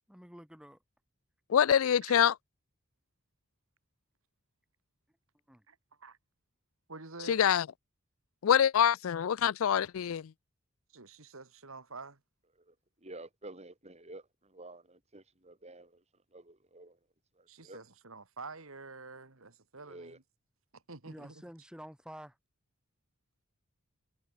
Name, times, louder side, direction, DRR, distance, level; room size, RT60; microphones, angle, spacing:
voice 1, 0.1-0.8 5.5-5.7 21.0-22.4, equal, 5° right, 5.6 m, -49 dB
voice 2, 1.5-2.3 7.3-7.7 8.4-10.3, left 9 dB, 75° left, 0.4 m, -25 dB
voice 3, 5.7-6.2 6.9-7.4 10.9-12.2 17.5-20.2 20.7-21.4, right 3 dB, 80° right, 2.4 m, -48 dB
voice 4, 13.0-16.0 16.3-17.0 17.4-17.8 19.8-20.2, right 2 dB, 30° right, 3.3 m, -50 dB
head